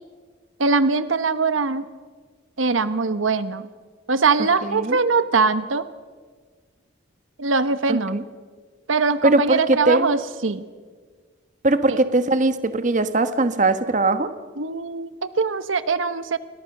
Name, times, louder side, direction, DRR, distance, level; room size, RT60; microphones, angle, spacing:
voice 1, 0.6-1.8 2.6-3.7 4.1-5.8 7.4-8.2 8.9-10.7 11.9-12.0 14.6-16.4, right 4 dB, 85° right, 13 dB, 1.1 m, -22 dB
voice 2, 4.6-5.0 7.9-8.2 9.2-10.1 11.6-14.3, right 2 dB, 40° right, 11 dB, 1.3 m, -20 dB
29.5 x 23.0 x 6.7 m, 1.5 s
head